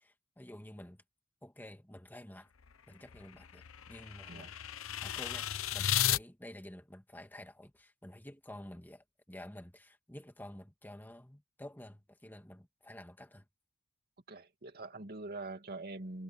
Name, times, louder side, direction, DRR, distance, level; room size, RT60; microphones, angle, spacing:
voice 1, 0.4-1.0 1.4-2.5 2.9-4.5 5.0-13.5, left 1 dB, 10° left, 1.9 m, -50 dB
sound 1, 2.6-6.2, left 11 dB, 85° left, 0.9 m, -35 dB
voice 2, 14.3-16.2, right 2 dB, 50° right, 2.4 m, -44 dB
head